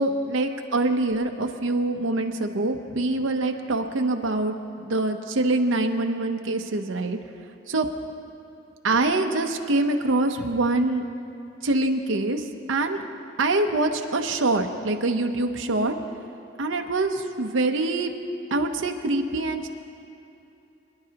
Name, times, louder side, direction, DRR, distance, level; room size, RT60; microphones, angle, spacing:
voice 1, 0.0-7.2 7.7-7.9 8.8-11.0 11.6-12.4 12.7-13.0 13.4-15.9 16.6-18.1 18.5-19.7, right 2 dB, 80° right, 4 dB, 0.8 m, -24 dB
25.0 x 10.5 x 2.9 m, 2.9 s
head